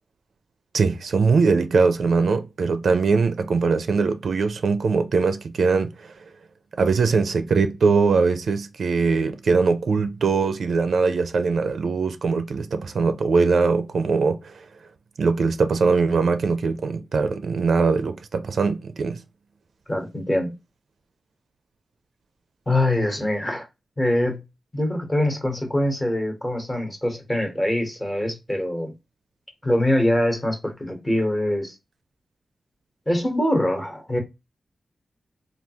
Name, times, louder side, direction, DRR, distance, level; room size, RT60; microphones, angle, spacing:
voice 1, 0.7-6.1 6.8-14.6 15.2-19.2, right 4 dB, 75° right, 0.4 m, -21 dB
voice 2, 19.9-20.5 22.7-23.7 24.0-24.4 24.7-28.9 29.6-31.8 33.1-34.2, left 1 dB, 20° left, 1.0 m, -23 dB
3.4 x 2.3 x 2.8 m
wide cardioid pair, 130°, 0 cm